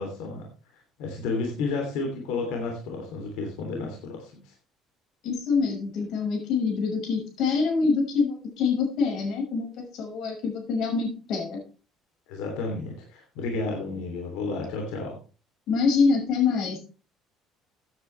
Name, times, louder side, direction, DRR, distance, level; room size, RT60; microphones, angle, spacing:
voice 1, 0.0-4.5 12.3-15.2, left 3 dB, 85° left, 1 dB, 3.1 m, -32 dB
voice 2, 5.2-11.6 15.7-16.8, left 5 dB, 55° left, 1 dB, 5.8 m, -25 dB
15.0 x 9.5 x 3.4 m, 0.35 s
cardioid pair, 165°, 0 cm